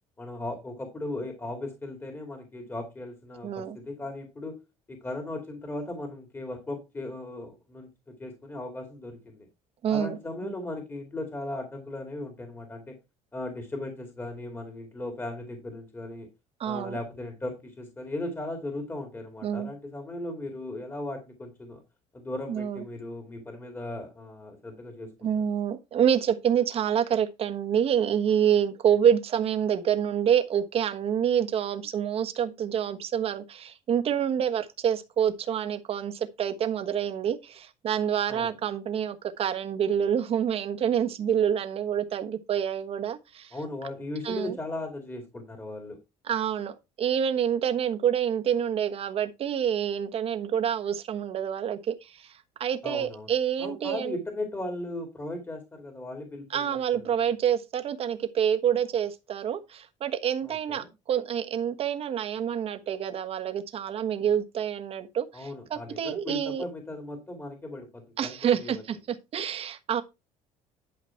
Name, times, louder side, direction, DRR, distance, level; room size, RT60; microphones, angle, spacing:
voice 1, 0.2-4.6 4.9-9.5 9.9-13.0 13.3-16.3 16.6-21.8 22.1-25.4 38.3-38.6 43.5-46.0 52.8-53.3 53.6-57.3 60.4-60.9 65.3-68.8, left 2 dB, 15° left, 2.4 m, -37 dB
voice 2, 3.4-3.8 9.8-10.2 10.4-10.5 16.6-17.0 19.4-19.7 22.5-22.8 25.2-43.5 44.2-44.5 46.3-52.1 52.6-54.2 56.5-66.6 68.2-70.0, right 9 dB, 45° right, 1.3 m, -27 dB
11.5 x 5.1 x 4.5 m
cardioid pair, 130°, 14 cm